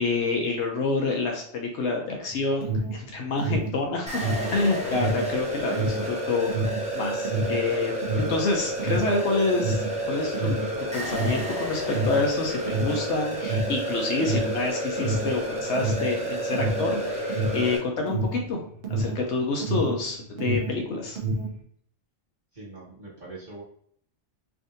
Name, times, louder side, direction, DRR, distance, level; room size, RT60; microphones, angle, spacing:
voice 1, 0.0-6.5 6.9-10.6 10.9-18.6 18.9-21.2, left 3 dB, 80° left, 1 dB, 0.9 m, -28 dB
Alarm, 2.3-20.1 20.3-21.6, right 2 dB, 60° right, 0.8 m, -29 dB
sound 1, 4.1-17.8, equal, 10° right, 0.5 m, -30 dB
voice 2, 22.5-23.6, right 2 dB, 40° right, -6 dB, 1.5 m, -42 dB
3.5 x 2.5 x 2.6 m, 0.64 s
omnidirectional pair, 1.2 m